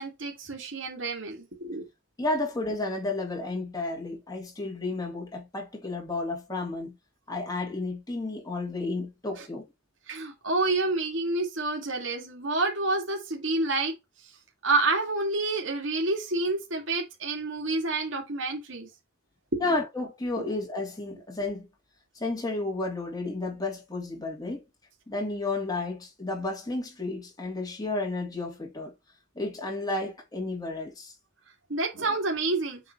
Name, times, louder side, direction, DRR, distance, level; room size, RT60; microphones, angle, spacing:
voice 1, 0.0-1.9 9.4-9.5 10.1-13.9 14.6-18.9 19.5-19.7 20.4-20.5 31.7-32.8, right 3 dB, 80° right, 2.6 m, -28 dB
voice 2, 2.2-7.0 7.3-9.7 19.6-21.7 22.2-24.6 25.1-28.9 29.4-31.1, left 2 dB, 20° left, 3.4 m, -32 dB
7.5 x 3.8 x 4.6 m
head